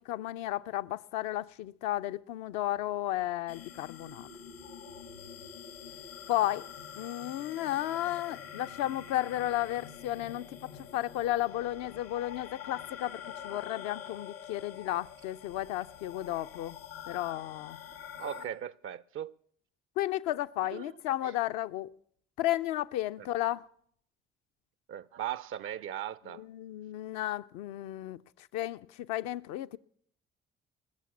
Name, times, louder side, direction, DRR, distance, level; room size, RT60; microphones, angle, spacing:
voice 1, 0.0-4.3 6.3-6.6 7.0-16.8 17.1-17.8 20.0-21.9 22.4-23.7 26.3-28.2 28.5-29.8, left 14 dB, 65° left, 0.5 m, -33 dB
sound 1, 3.5-18.5, left 8 dB, 80° left, 1.5 m, -46 dB
voice 2, 18.2-19.4 20.7-20.9 21.2-21.3 24.9-26.4, right 10 dB, 45° right, 0.5 m, -38 dB
20.5 x 6.9 x 7.2 m
figure-of-eight pair, 45°, 30 cm